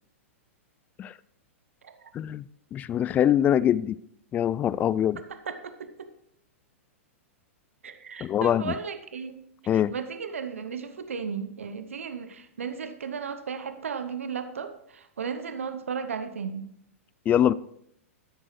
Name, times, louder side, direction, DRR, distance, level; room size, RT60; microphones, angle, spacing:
voice 1, 2.1-2.4 2.7-4.0 4.3-5.2 8.2-8.7 9.7-9.9 17.3-17.5, left 10 dB, 20° left, 0.3 m, -23 dB
voice 2, 5.4-5.9 7.8-9.4 9.7-16.7, right 6 dB, 70° right, 0.8 m, -35 dB
13.0 x 9.9 x 3.2 m
figure-of-eight pair, 100°, 7 cm